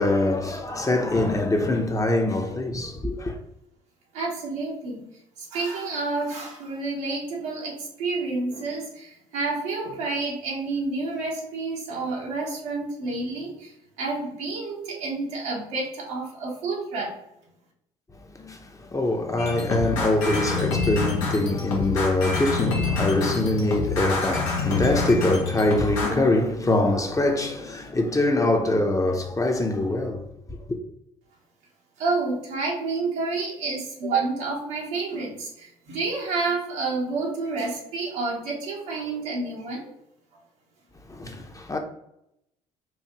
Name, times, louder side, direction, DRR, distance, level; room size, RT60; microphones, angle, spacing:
voice 1, 0.0-3.4 18.1-30.3 41.1-41.8, left 2 dB, 20° left, 0.8 m, -24 dB
voice 2, 4.1-5.1 5.4-17.1 32.0-39.9 40.3-40.4, right 3 dB, 75° right, 1.2 m, -29 dB
sound 1, 19.4-26.2, left 4 dB, 80° left, 0.9 m, -27 dB
4.7 x 2.5 x 2.9 m
hypercardioid pair, 55°, 17 cm